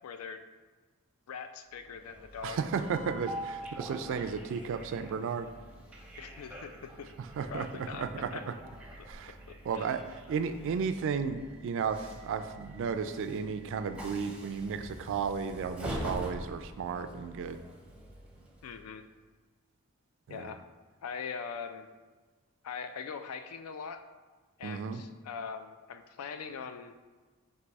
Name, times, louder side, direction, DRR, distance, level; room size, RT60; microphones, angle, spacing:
voice 1, 0.0-0.4 1.3-2.6 6.2-7.1 7.5-8.5 9.5-9.9 18.6-19.0 20.3-20.6 21.0-21.9 22.6-24.0 24.6-26.9, left 6 dB, 80° left, 9 dB, 0.4 m, -42 dB
Train, 1.8-19.0, right 1 dB, 5° right, 0.6 m, -45 dB
voice 2, 2.4-5.5 7.2-8.5 9.1-9.4 9.6-17.6 20.3-20.5 24.6-25.0, right 6 dB, 60° right, 9 dB, 0.3 m, -34 dB
4.6 x 2.6 x 4.0 m, 1.4 s
head